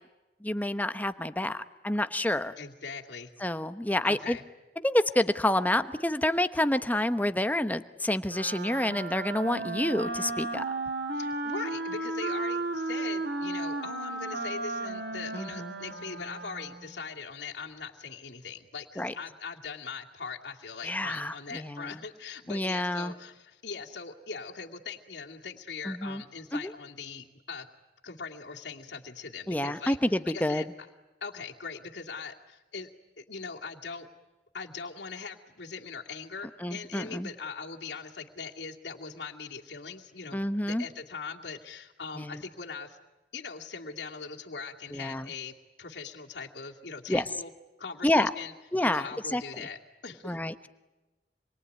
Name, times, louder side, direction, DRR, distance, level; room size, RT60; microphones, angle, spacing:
voice 1, 0.4-2.6 3.4-4.4 4.8-10.6 15.3-15.7 19.0-19.1 20.8-22.0 22.5-23.1 25.9-26.2 26.5-26.7 29.5-30.7 36.6-37.3 40.3-40.9 42.2-42.4 44.9-45.3 47.1-47.2 48.0-48.3 48.7-49.4 50.2-50.7, left 1 dB, 10° left, 10 dB, 1.0 m, -28 dB
voice 2, 2.6-3.3 4.0-4.4 11.1-27.7 28.0-30.0 30.3-30.7 31.2-32.9 33.2-34.1 34.5-43.0 43.3-47.5 47.8-48.5 48.8-50.4, left 5 dB, 85° left, 0 dB, 2.5 m, -41 dB
Wind instrument woodwind instrument, 8.2-16.9, right 2 dB, 80° right, 3.8 m, -34 dB
27.5 x 23.0 x 9.4 m, 1.1 s
head